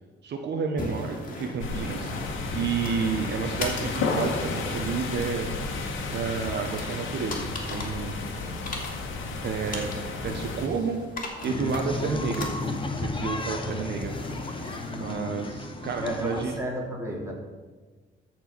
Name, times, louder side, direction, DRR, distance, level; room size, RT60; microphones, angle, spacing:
voice 1, 0.2-2.1 2.5-5.5 6.1-8.3 9.4-9.9 10.2-11.0 11.4-12.5 12.9-14.1 14.9-16.6, right 6 dB, 60° right, 4 dB, 1.0 m, -30 dB
sound 1, 0.8-16.6, left 2 dB, 45° left, 2.4 m, -39 dB
sound 2, 1.6-10.7, left 3 dB, 85° left, 1.6 m, -32 dB
sound 3, 11.4-16.6, left 3 dB, 25° left, 1.1 m, -33 dB
voice 2, 14.9-15.4 16.0-17.3, equal, 15° right, -2 dB, 2.8 m, -33 dB
13.5 x 4.6 x 6.0 m, 1.4 s
cardioid pair, 90°, 20 cm